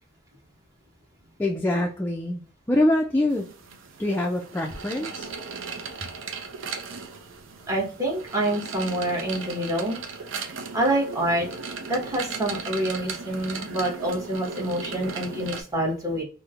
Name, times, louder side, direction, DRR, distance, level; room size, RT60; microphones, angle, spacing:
voice 1, 1.4-2.4 2.7-3.5 4.0-5.3, left 1 dB, 10° left, 1 dB, 0.3 m, -24 dB
sound 1, 3.3-15.6, right 5 dB, 80° right, 0.5 m, -37 dB
voice 2, 7.7-10.0 10.7-11.5 11.9-16.2, right 1 dB, 20° right, -3 dB, 1.0 m, -27 dB
3.1 x 2.0 x 2.3 m, 0.39 s
head